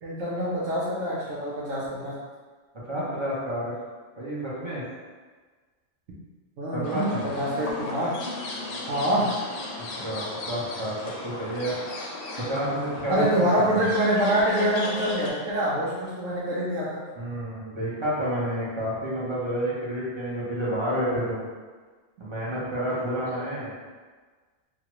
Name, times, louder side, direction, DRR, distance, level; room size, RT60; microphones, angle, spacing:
voice 1, 0.0-2.2 6.6-8.1 8.9-9.3 13.1-17.0 23.2-23.6, equal, 85° right, -8 dB, 1.0 m, -25 dB
voice 2, 2.9-3.7 4.2-4.8 6.7-7.3 9.8-11.0 11.2-11.8 12.5-13.9 17.2-21.5 22.2-23.7, equal, 30° right, -8 dB, 0.5 m, -30 dB
sound 1, 6.8-15.3, left 2 dB, 70° left, 0.9 m, -36 dB
3.0 x 2.2 x 2.9 m, 1.4 s
omnidirectional pair, 1.3 m